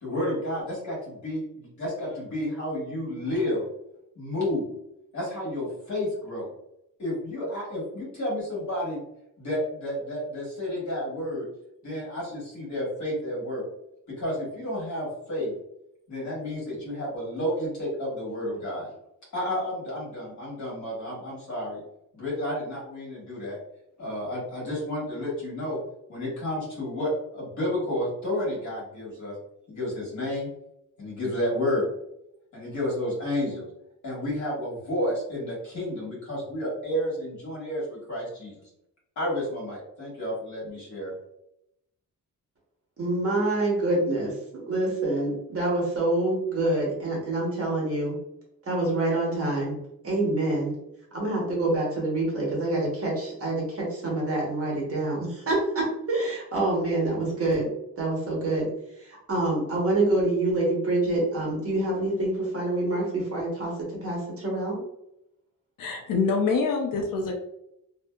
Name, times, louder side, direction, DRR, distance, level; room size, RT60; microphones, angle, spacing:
voice 1, 0.0-3.6 4.1-4.7 5.1-6.5 7.0-9.0 9.4-11.5 11.8-13.6 14.1-15.5 16.1-18.9 19.3-21.8 22.1-23.6 24.0-25.8 26.1-29.3 29.7-30.5 31.0-31.9 32.5-33.7 34.0-38.6 39.1-41.1, left 1 dB, 55° left, -5 dB, 1.5 m, -31 dB
voice 2, 43.0-44.3 44.7-48.2 48.7-49.8 50.0-50.7 51.1-57.7 58.0-58.7 59.0-63.7 64.0-64.8, right 2 dB, 40° right, -4 dB, 1.1 m, -26 dB
voice 3, 65.8-67.4, left 4 dB, 75° left, 2 dB, 0.5 m, -25 dB
2.6 x 2.5 x 2.3 m, 0.81 s
wide cardioid pair, 140°, 34 cm